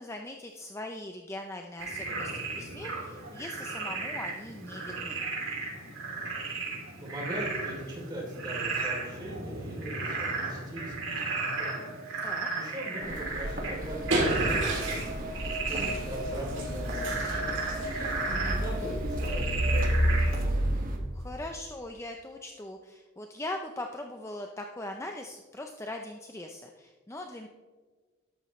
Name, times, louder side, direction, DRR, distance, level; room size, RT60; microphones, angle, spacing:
voice 1, 0.0-5.2 12.2-12.5 21.1-27.5, left 1 dB, 15° left, 3 dB, 0.5 m, -40 dB
Frog, 1.8-20.5, right 3 dB, 75° right, 3.2 m, -34 dB
voice 2, 7.0-11.9 12.5-20.1, right 1 dB, 20° right, -2 dB, 3.1 m, -40 dB
sound 1, 13.0-21.0, equal, 40° right, 1.7 m, -31 dB
sound 2, 13.6-21.7, right 1 dB, 60° right, 3.1 m, -36 dB
12.5 x 12.0 x 3.2 m, 1.4 s
head